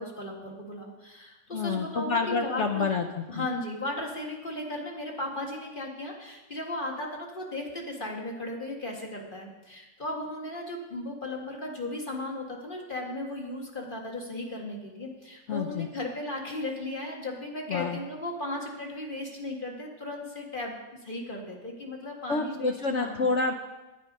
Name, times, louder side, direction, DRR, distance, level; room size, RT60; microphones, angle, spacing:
voice 1, 0.0-2.9 3.3-20.7 21.0-23.3, left 1 dB, 30° left, 0 dB, 1.9 m, -36 dB
voice 2, 1.5-3.5 15.5-15.9 17.7-18.0 22.3-23.5, left 4 dB, 60° left, 4 dB, 0.8 m, -28 dB
9.8 x 9.6 x 5.3 m, 1.1 s
omnidirectional pair, 1.8 m